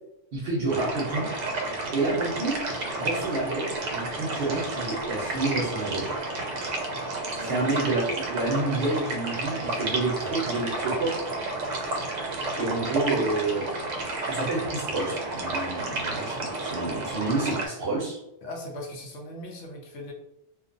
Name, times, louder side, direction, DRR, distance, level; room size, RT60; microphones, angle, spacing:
voice 1, 0.3-1.3 1.9-2.6 3.0-6.1 7.4-11.1 12.6-13.7 14.3-18.2, right 3 dB, 60° right, -3 dB, 0.8 m, -29 dB
sound 1, 0.7-17.7, right 2 dB, 85° right, 0.9 m, -31 dB
voice 2, 12.6-13.0 18.4-20.1, left 1 dB, 75° left, 1 dB, 0.9 m, -39 dB
2.4 x 2.2 x 2.5 m, 0.86 s
omnidirectional pair, 1.2 m